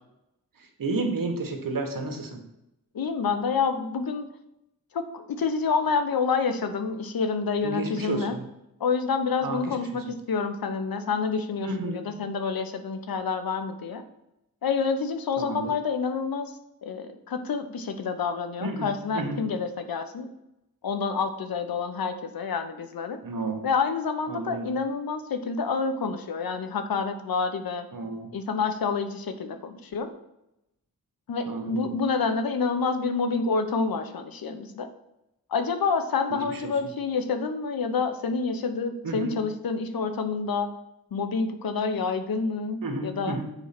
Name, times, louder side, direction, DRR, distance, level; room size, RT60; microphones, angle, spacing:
voice 1, 0.8-2.4 7.6-8.5 9.4-9.8 11.6-12.0 15.4-15.7 18.6-19.5 23.2-23.7 24.3-24.7 27.9-28.3 31.5-31.9 36.3-36.7 39.0-39.4 42.8-43.5, right 2 dB, 65° right, 4 dB, 1.7 m, -32 dB
voice 2, 2.9-4.3 4.9-8.3 8.8-14.0 14.6-16.5 16.8-20.3 20.8-23.2 23.6-27.9 28.3-30.1 31.3-34.9 35.5-40.7 41.1-43.4, left 5 dB, 75° left, 9 dB, 1.0 m, -28 dB
6.9 x 4.4 x 5.9 m, 0.88 s
cardioid pair, 70°, 35 cm